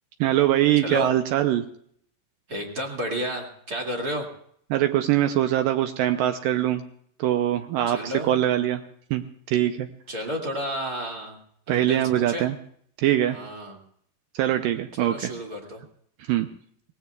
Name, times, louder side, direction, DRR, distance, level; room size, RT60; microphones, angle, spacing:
voice 1, 0.2-1.6 4.7-6.8 7.2-8.8 9.1-9.9 11.7-12.6 13.0-13.4 14.4-15.3 16.3-16.5, right 12 dB, 85° right, 7 dB, 1.9 m, -23 dB
voice 2, 2.5-4.3 7.9-8.3 10.1-11.4 11.7-12.5 13.3-13.8 15.0-15.8, equal, 30° right, 0 dB, 2.1 m, -31 dB
25.0 x 18.0 x 2.4 m, 0.63 s
omnidirectional pair, 4.9 m